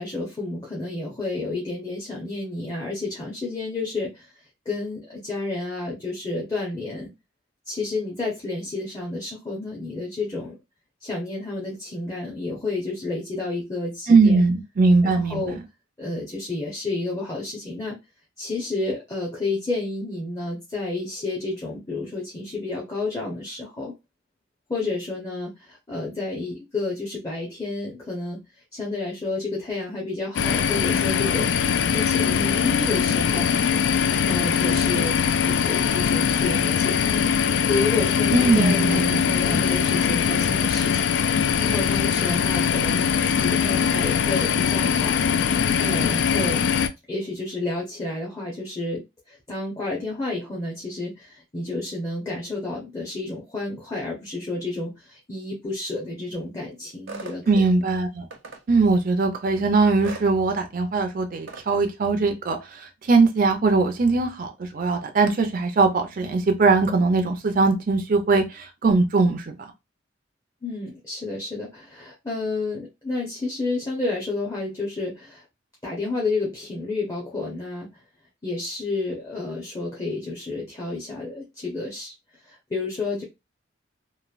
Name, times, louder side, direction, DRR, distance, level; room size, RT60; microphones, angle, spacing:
voice 1, 0.0-7.1 7.7-10.6 11.0-14.4 15.0-15.6 16.0-18.0 18.4-23.9 24.7-28.4 28.7-31.5 31.9-33.5 34.0-35.2 35.5-37.3 37.6-41.1 41.6-45.2 45.5-46.6 47.1-57.7 70.6-75.4 75.8-77.9 78.4-82.1 82.4-83.2, left 3 dB, 20° left, 0.7 m, -30 dB
voice 2, 14.1-15.4 38.3-39.2 57.5-58.3 58.7-69.5, right 3 dB, 45° right, 0.4 m, -20 dB
sound 1, 30.3-46.9, left 7 dB, 65° left, 0.3 m, -22 dB
sound 2, 57.1-57.4 58.3-58.6 60.0-60.3 61.5-61.7, right 3 dB, 80° right, 0.7 m, -37 dB
3.0 x 2.5 x 2.4 m
head